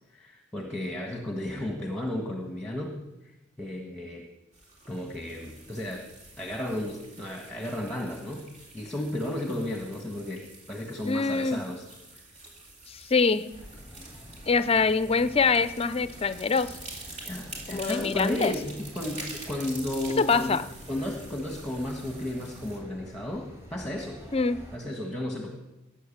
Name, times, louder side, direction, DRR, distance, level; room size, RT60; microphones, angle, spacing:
voice 1, 0.1-3.0 3.6-4.3 4.9-6.1 6.4-8.4 8.7-11.9 17.2-20.6 20.9-24.2 24.7-25.5, left 1 dB, 5° left, 1 dB, 1.5 m, -33 dB
sound 1, 4.5-22.8, right 2 dB, 35° right, 3.7 m, -46 dB
voice 2, 11.0-11.6 12.9-13.5 14.5-16.7 17.7-18.5 20.2-20.7 24.3-24.6, left 4 dB, 30° left, 14 dB, 0.5 m, -24 dB
sound 2, 13.5-24.8, equal, 15° right, 4.0 m, -48 dB
17.5 x 9.3 x 7.3 m, 1.0 s
head